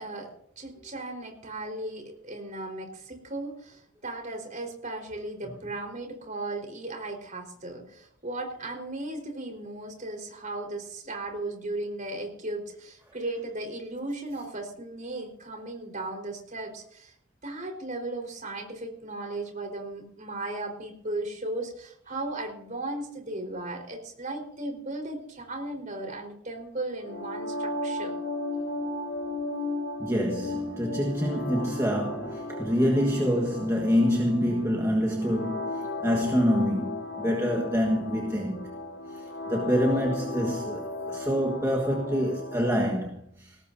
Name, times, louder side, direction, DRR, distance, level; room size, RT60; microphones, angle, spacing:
voice 1, 0.0-17.1 17.4-28.2, right 2 dB, 35° right, 4.5 m, -36 dB
sound 1, 27.0-43.0, left 2 dB, 65° left, 3.9 m, -35 dB
voice 2, 30.0-38.7 39.1-43.6, equal, 15° right, 1.5 m, -26 dB
21.0 x 18.0 x 2.8 m
head